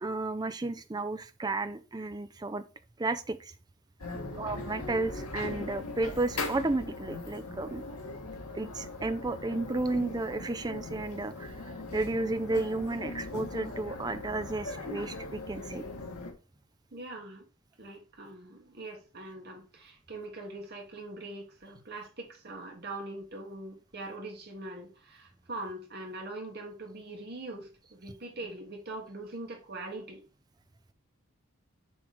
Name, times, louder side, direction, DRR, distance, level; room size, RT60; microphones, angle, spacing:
voice 1, 0.0-2.6 3.0-3.5 4.4-7.8 8.5-15.8, right 2 dB, 20° right, 0.4 m, -33 dB
sound 1, 4.0-16.3, left 2 dB, 90° left, 1.4 m, -40 dB
voice 2, 4.1-4.5 16.9-17.5 17.8-30.2, right 2 dB, 45° right, 1.5 m, -42 dB
7.1 x 3.2 x 4.8 m
head